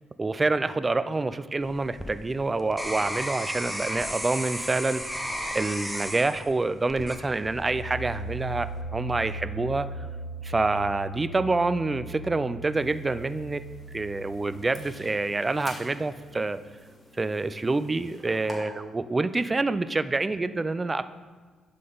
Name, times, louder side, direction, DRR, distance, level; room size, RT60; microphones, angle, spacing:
voice 1, 0.2-5.2 5.5-10.1 10.4-13.6 13.9-16.6 17.2-21.0, right 3 dB, 25° right, 13 dB, 0.3 m, -27 dB
sound 1, 1.6-7.8 8.4-8.8, equal, ahead, 0.7 m, -34 dB
sound 2, 7.0-16.6, right 2 dB, 55° left, 0.5 m, -39 dB
sound 3, 12.7-18.6, left 1 dB, 20° left, 1.7 m, -49 dB
11.0 x 3.8 x 3.9 m, 1.4 s
cardioid pair, 90°, 0 cm